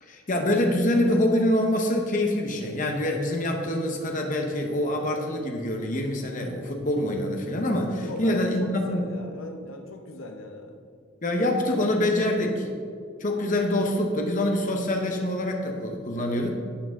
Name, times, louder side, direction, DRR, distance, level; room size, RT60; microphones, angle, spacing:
voice 1, 0.0-9.1 11.2-12.7 13.2-16.6, left 1 dB, 40° left, 2 dB, 1.0 m, -25 dB
voice 2, 8.0-10.8 11.4-12.1 16.1-16.4, left 1 dB, 75° left, 4 dB, 1.0 m, -39 dB
11.5 x 8.7 x 3.7 m, 2.3 s
head